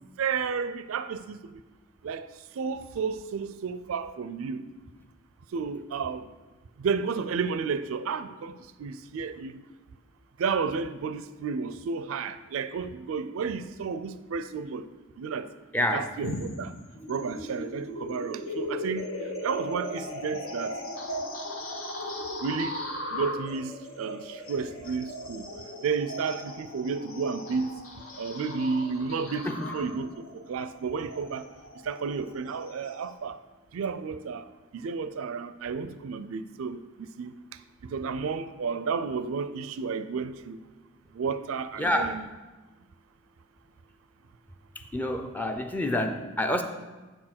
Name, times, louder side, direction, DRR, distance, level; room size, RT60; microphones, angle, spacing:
voice 1, 0.0-1.4 2.0-2.3 2.6-4.6 5.5-6.3 6.8-9.6 10.4-14.9 15.2-15.5 15.9-16.7 17.1-19.1 19.4-20.8 22.4-22.8 23.1-25.5 25.8-27.8 28.2-31.5 31.8-33.4 33.7-34.5 34.7-36.8 37.2-37.3 37.8-40.6 41.1-42.3, right 5 dB, 80° right, 0.4 m, -32 dB
voice 2, 15.7-16.1 29.5-29.7 41.8-42.2 44.9-46.6, left 1 dB, 10° left, 0.5 m, -27 dB
sound 1, 16.2-33.1, left 1 dB, 75° left, 1.0 m, -38 dB
7.9 x 4.5 x 5.9 m
head